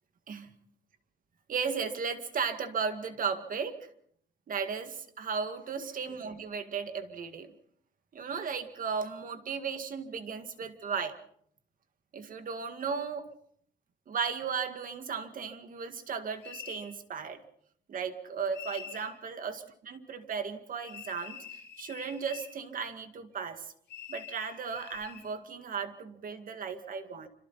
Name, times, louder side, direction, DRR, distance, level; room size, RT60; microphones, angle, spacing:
voice 1, 1.5-3.9 4.5-7.5 8.1-11.2 12.1-13.3 14.1-17.4 17.9-23.7 24.1-27.3, right 6 dB, 45° right, 8 dB, 2.0 m, -35 dB
sound 1, 16.4-16.9 18.5-19.1 20.9-22.6 23.9-25.3, left 9 dB, 60° left, 7.3 m, -46 dB
27.0 x 26.0 x 4.2 m, 0.65 s
cardioid pair, 145°, 20 cm